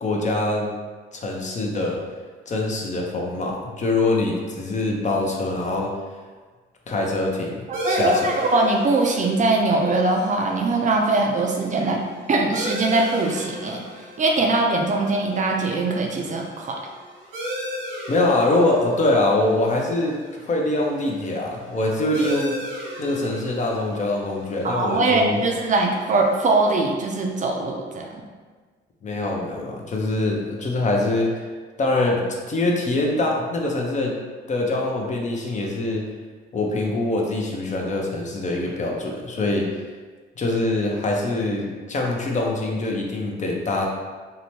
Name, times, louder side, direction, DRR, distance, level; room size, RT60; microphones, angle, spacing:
voice 1, 0.0-0.7 1.1-2.0 2.5-5.9 6.9-8.3 18.1-20.2 20.4-22.6 23.0-25.5 29.0-31.4 31.8-34.1 34.5-36.0 36.5-39.7 40.4-43.9, left 2 dB, 35° left, 0 dB, 0.5 m, -24 dB
voice 2, 7.7-12.0 12.3-13.8 14.2-16.8 24.6-28.2, right 2 dB, 40° right, 1 dB, 0.4 m, -21 dB
sound 1, 7.7-26.9, equal, 80° right, 1.0 m, -37 dB
2.8 x 2.1 x 3.0 m, 1.4 s
cardioid pair, 90°, 20 cm